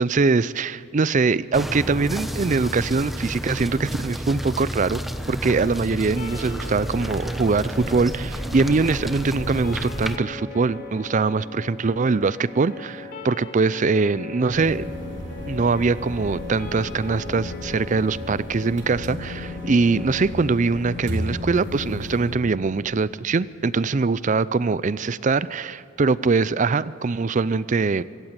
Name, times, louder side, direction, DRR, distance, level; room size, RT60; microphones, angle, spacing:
voice 1, 0.0-5.0 5.3-14.9 15.5-28.0, right 4 dB, 40° right, 18 dB, 0.4 m, -22 dB
sound 1, 1.5-10.2, equal, ahead, 0.9 m, -31 dB
sound 2, 6.2-22.2, left 3 dB, 50° left, 2.9 m, -40 dB
sound 3, 14.5-22.3, left 1 dB, 65° right, 3.9 m, -34 dB
25.5 x 14.5 x 8.1 m, 2.9 s
head